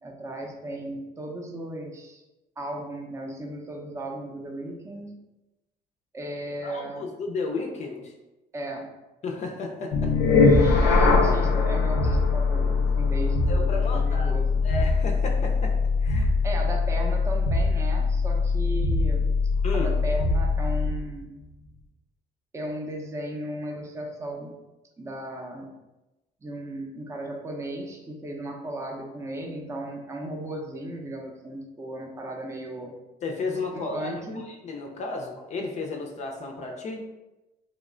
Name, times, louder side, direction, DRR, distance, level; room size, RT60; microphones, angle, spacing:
voice 1, 0.0-2.2 2.6-5.1 6.1-7.1 8.5-8.9 10.0-14.5 16.4-19.3 19.7-21.3 22.5-24.5 25.0-25.7 26.4-33.0 33.7-34.4, right 1 dB, 15° right, 0 dB, 0.5 m, -36 dB
voice 2, 6.6-8.1 9.2-10.1 13.5-14.3 14.6-16.4 19.6-20.0 33.2-34.1 34.5-37.0, left 3 dB, 45° left, 1 dB, 0.5 m, -33 dB
sound 1, 9.9-21.0, left 4 dB, 90° left, 0.6 m, -22 dB
3.0 x 2.1 x 3.7 m, 1.0 s
cardioid pair, 110°, 17 cm